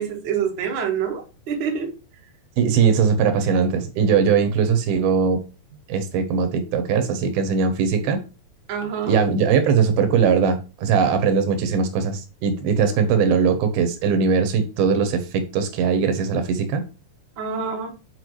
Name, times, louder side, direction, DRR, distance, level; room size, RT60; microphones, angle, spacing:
voice 1, 0.0-1.9 8.7-9.2 17.4-17.9, right 7 dB, 60° right, 1.3 m, -26 dB
voice 2, 2.6-5.4 5.9-8.2 9.1-16.8, right 6 dB, 80° right, 2.7 m, -20 dB
8.0 x 4.8 x 3.1 m
omnidirectional pair, 4.5 m